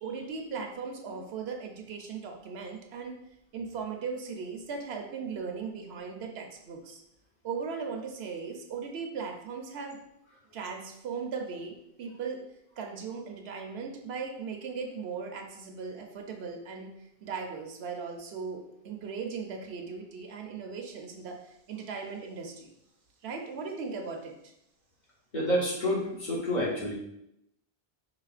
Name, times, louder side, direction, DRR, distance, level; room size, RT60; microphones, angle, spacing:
voice 1, 0.0-3.2 3.5-7.0 7.4-10.0 10.5-12.4 12.8-16.9 17.2-22.7 23.2-24.4, right 5 dB, 80° right, 3 dB, 0.9 m, -38 dB
voice 2, 25.3-26.9, equal, 45° left, -5 dB, 1.2 m, -28 dB
4.8 x 3.5 x 2.4 m, 0.80 s
omnidirectional pair, 1.1 m